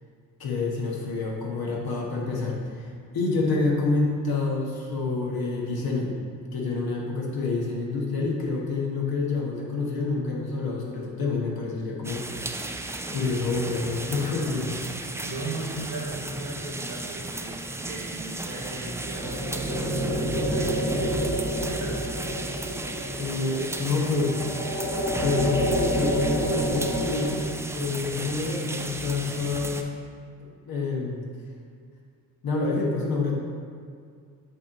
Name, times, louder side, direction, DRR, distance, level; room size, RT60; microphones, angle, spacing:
voice 1, 0.4-2.9 3.1-6.1 6.5-12.2 13.1-14.8 23.1-24.4 25.2-27.5 27.7-29.9 30.4-31.3 32.4-33.3, left 3 dB, 60° left, -2 dB, 1.4 m, -28 dB
sound 1, 12.0-29.8, right 2 dB, 5° right, 0.4 m, -35 dB
voice 2, 15.2-22.0, right 2 dB, 50° right, -2 dB, 1.3 m, -37 dB
sound 2, 18.6-27.4, equal, 25° left, 1.3 m, -28 dB
8.3 x 3.0 x 3.9 m, 2.2 s
hypercardioid pair, 50°, 40 cm